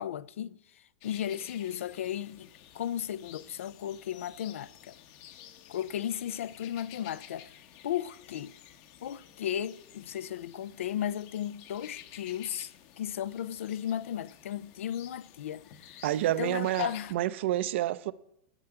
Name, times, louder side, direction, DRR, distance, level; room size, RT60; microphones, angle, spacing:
voice 1, 0.0-2.5 2.7-4.9 5.7-7.5 7.8-8.5 9.0-16.0 16.4-17.1, left 10 dB, 85° left, 0.4 m, -35 dB
sound 1, 1.0-17.1, left 11 dB, 45° left, 0.9 m, -53 dB
voice 2, 16.0-18.1, right 14 dB, 65° right, 0.5 m, -29 dB
9.9 x 5.8 x 8.6 m
supercardioid pair, 140°, 7 cm